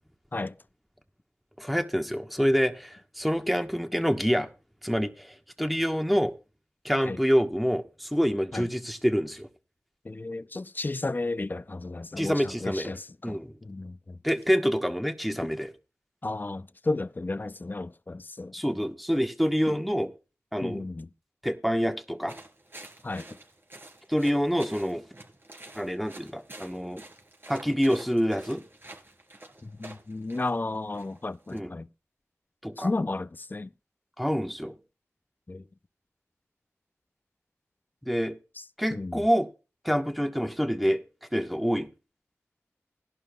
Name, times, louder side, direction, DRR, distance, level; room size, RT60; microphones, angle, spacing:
voice 1, 1.6-4.5 4.8-6.3 6.8-9.5 12.2-12.9 13.2-13.5 14.2-15.7 18.5-20.1 20.5-20.9 21.4-22.4 24.1-25.0 25.7-27.0 27.5-28.6 31.5-31.7 32.6-32.9 34.2-34.7 38.0-38.4 38.8-39.5 39.8-41.0 41.3-41.9, equal, ahead, 1.2 m, -27 dB
voice 2, 10.0-14.2 16.2-18.5 20.6-21.1 23.0-23.3 29.6-31.9 32.8-33.7 35.5-35.6 38.9-39.2, left 2 dB, 35° left, 0.4 m, -33 dB
sound 1, 22.3-31.6, right 1 dB, 45° right, 3.9 m, -49 dB
16.5 x 11.0 x 2.3 m
cardioid pair, 40°, 5 cm